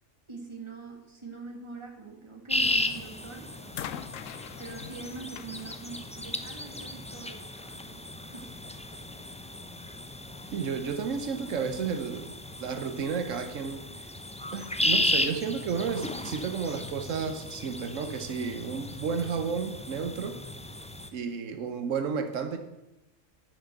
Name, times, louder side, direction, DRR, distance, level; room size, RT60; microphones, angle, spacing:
voice 1, 0.3-3.8 4.6-8.0 8.3-8.6, right 3 dB, 25° right, 1 dB, 1.8 m, -44 dB
sound 1, 2.5-21.1, left 1 dB, 10° left, 0.4 m, -35 dB
sound 2, 2.8-3.1 3.7-7.0 8.0-8.1, left 10 dB, 85° left, 1.0 m, -43 dB
voice 2, 10.5-12.3 12.6-13.8 14.5-20.4 21.1-22.6, right 6 dB, 80° right, 7 dB, 1.2 m, -32 dB
9.9 x 6.1 x 7.8 m, 0.98 s
omnidirectional pair, 1.3 m